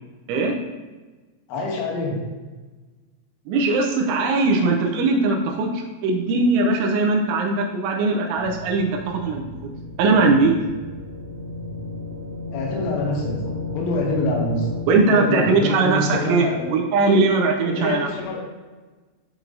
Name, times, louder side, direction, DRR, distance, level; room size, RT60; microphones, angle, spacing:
voice 1, 1.5-2.2 12.5-14.7 15.1-16.7 17.7-18.4, left 2 dB, 85° left, -2 dB, 3.7 m, -26 dB
voice 2, 3.5-9.4 10.0-10.6 14.9-18.1, right 3 dB, 85° right, 1 dB, 3.0 m, -20 dB
sound 1, 8.4-14.8, left 2 dB, 40° right, 1.8 m, -33 dB
11.0 x 4.5 x 2.6 m, 1.3 s
omnidirectional pair, 5.6 m